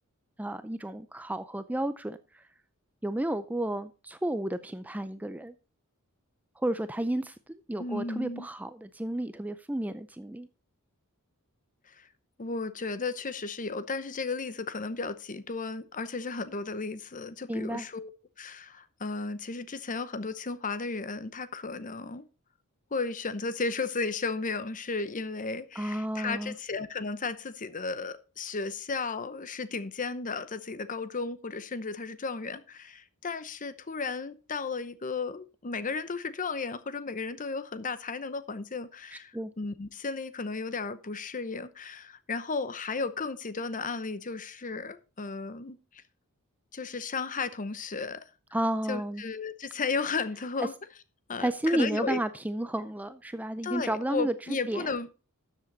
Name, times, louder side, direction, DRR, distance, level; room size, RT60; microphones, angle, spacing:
voice 1, 0.4-2.4 3.0-5.6 6.6-7.4 7.7-10.5 17.5-17.9 25.8-26.5 39.1-39.5 48.5-49.2 51.4-54.9, right 1 dB, 5° right, 0.4 m, -32 dB
voice 2, 7.8-8.5 11.9-12.1 12.4-18.1 18.4-22.3 22.9-46.0 46.7-48.2 48.9-50.7 51.3-52.2 53.6-55.1, left 4 dB, 35° left, 0.8 m, -34 dB
13.0 x 7.4 x 4.0 m
head